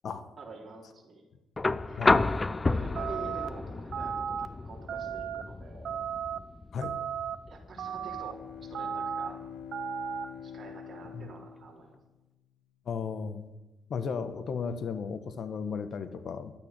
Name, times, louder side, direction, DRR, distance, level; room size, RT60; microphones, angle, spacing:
voice 1, 0.4-1.2 1.9-2.0 2.7-6.0 7.5-9.4 10.4-12.0, right 3 dB, 35° right, -2 dB, 3.8 m, -47 dB
sound 1, 1.6-9.6 11.0-11.1, left 3 dB, 25° left, 0.5 m, -31 dB
sound 2, 3.0-3.5 3.9-4.5 4.9-5.4 5.8-6.4 6.8-7.4 7.8-8.3 8.7-9.3 9.7-10.3, right 8 dB, 65° right, 0.8 m, -34 dB
Bowed string instrument, 7.8-12.4, left 7 dB, 85° left, 1.2 m, -46 dB
voice 2, 12.9-13.5 13.9-16.5, left 6 dB, 60° left, 10 dB, 1.2 m, -35 dB
12.0 x 8.9 x 10.0 m, 1.0 s
cardioid pair, 90°, 0 cm